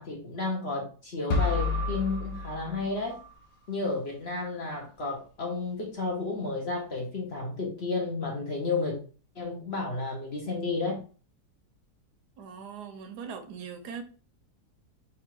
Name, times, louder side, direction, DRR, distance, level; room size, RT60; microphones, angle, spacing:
voice 1, 0.0-3.2 3.7-9.0 9.4-11.0, left 3 dB, 45° left, 0.9 m, -32 dB
sound 1, 1.3-3.3, left 3 dB, 80° left, 1.3 m, -30 dB
voice 2, 12.4-14.0, right 6 dB, 75° right, 1.2 m, -40 dB
3.8 x 2.4 x 4.4 m
omnidirectional pair, 1.7 m